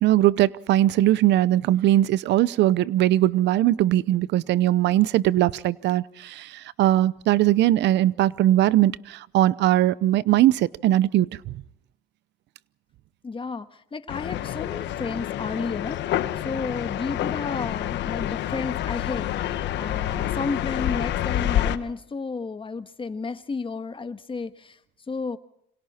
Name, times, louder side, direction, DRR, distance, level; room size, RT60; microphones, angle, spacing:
voice 1, 0.0-11.3, right 14 dB, 80° right, 19 dB, 0.8 m, -20 dB
voice 2, 13.2-24.8 25.1-25.4, left 4 dB, 30° left, 10 dB, 1.6 m, -32 dB
sound 1, 14.1-21.8, left 12 dB, 80° left, 1.2 m, -28 dB
28.0 x 25.5 x 4.4 m, 0.75 s
cardioid pair, 85°, 18 cm